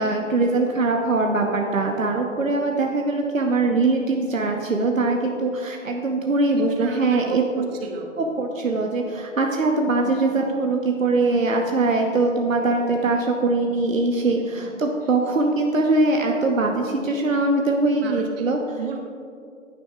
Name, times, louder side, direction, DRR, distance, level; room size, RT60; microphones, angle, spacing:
voice 1, 0.0-7.7 8.4-18.6, right 3 dB, 80° right, 2 dB, 1.1 m, -22 dB
voice 2, 6.5-8.1 14.4-14.7 15.0-15.2 18.0-18.5 18.8-19.0, right 6 dB, 50° right, 1 dB, 1.7 m, -34 dB
15.5 x 10.5 x 2.4 m, 2.4 s
figure-of-eight pair, 120°, 39 cm